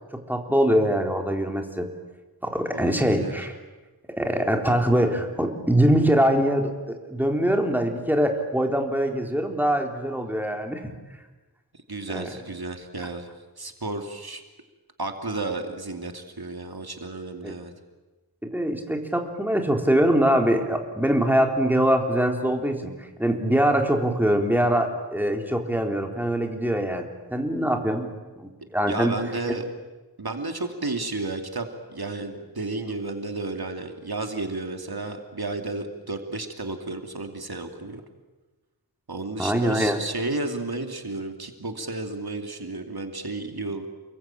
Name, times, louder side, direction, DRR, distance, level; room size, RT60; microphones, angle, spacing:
voice 1, 0.3-1.9 2.4-3.6 4.1-10.8 12.1-12.3 17.4-17.5 18.4-22.9 23.2-28.1 28.4-29.1 29.5-29.6 39.4-40.0, equal, 5° right, 3 dB, 3.9 m, -23 dB
voice 2, 2.7-3.4 11.9-13.3 13.6-14.4 15.0-17.7 28.9-29.7 30.2-38.0 39.1-43.9, right 2 dB, 70° right, 5 dB, 2.7 m, -32 dB
29.5 x 22.0 x 9.0 m, 1.2 s
wide cardioid pair, 50°, 38 cm